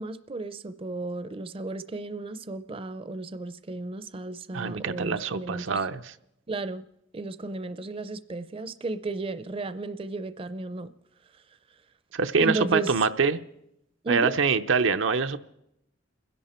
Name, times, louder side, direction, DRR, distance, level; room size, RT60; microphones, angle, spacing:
voice 1, 0.0-5.8 6.5-6.9 7.1-10.9 12.4-12.9 14.0-14.4, right 3 dB, 30° right, 0.5 m, -34 dB
voice 2, 4.5-6.1 12.1-13.4 14.1-15.4, right 5 dB, 90° right, 0.7 m, -25 dB
30.0 x 11.0 x 4.3 m
head